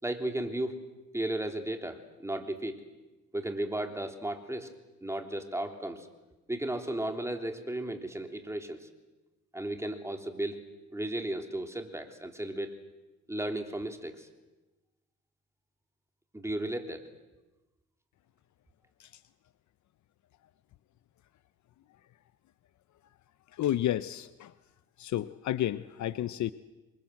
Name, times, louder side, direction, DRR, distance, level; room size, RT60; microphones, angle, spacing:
voice 1, 0.0-0.8 1.1-2.8 3.3-4.7 5.0-6.1 6.5-8.9 9.5-10.6 10.9-12.8 13.3-14.3 16.3-17.1, right 1 dB, 10° right, 5 dB, 3.4 m, -34 dB
voice 2, 23.6-24.5 25.0-26.5, left 12 dB, 70° left, 13 dB, 0.9 m, -31 dB
28.0 x 23.5 x 7.9 m, 1.1 s
cardioid pair, 90°, 30 cm